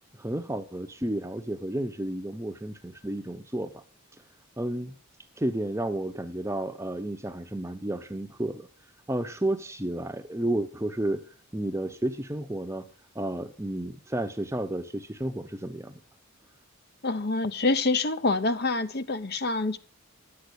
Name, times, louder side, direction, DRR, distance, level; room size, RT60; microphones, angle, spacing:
voice 1, 0.1-3.8 4.6-5.0 5.4-8.7 9.1-11.2 11.5-12.8 13.1-16.0, right 1 dB, 15° right, 0.8 m, -31 dB
voice 2, 17.0-19.8, left 3 dB, 45° left, 0.8 m, -26 dB
11.5 x 8.3 x 8.0 m
head